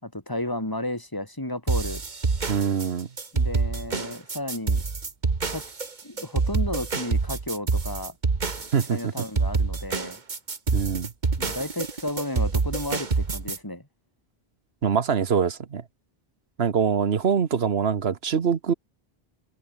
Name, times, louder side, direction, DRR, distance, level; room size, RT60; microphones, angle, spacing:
voice 1, 0.0-2.0 3.3-4.8 5.5-5.6 6.0-8.2 8.5-8.6 8.9-10.2 11.4-13.9, left 1 dB, 20° left, 3.3 m, -33 dB
sound 1, 1.7-13.6, right 4 dB, 45° right, 1.6 m, -26 dB
voice 2, 2.5-3.1 8.7-9.1 10.7-11.1 14.8-15.8 16.6-18.7, right 6 dB, 75° right, 1.4 m, -24 dB
omnidirectional pair, 1.1 m